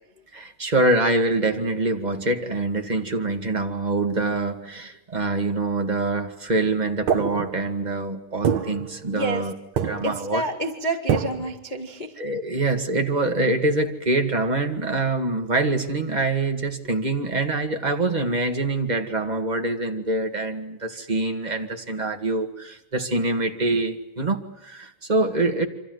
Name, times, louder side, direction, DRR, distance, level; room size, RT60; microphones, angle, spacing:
voice 1, 0.3-9.5 9.8-10.4 12.2-25.6, right 2 dB, 20° right, 4 dB, 1.3 m, -25 dB
sound 1, 7.1-7.9 8.4-9.5 9.8-10.3 11.1-11.6, right 8 dB, 60° right, 2.8 m, -26 dB
voice 2, 9.1-9.5 10.0-12.2, right 2 dB, 15° left, 2 dB, 1.6 m, -28 dB
28.0 x 26.0 x 8.1 m, 0.88 s
omnidirectional pair, 4.0 m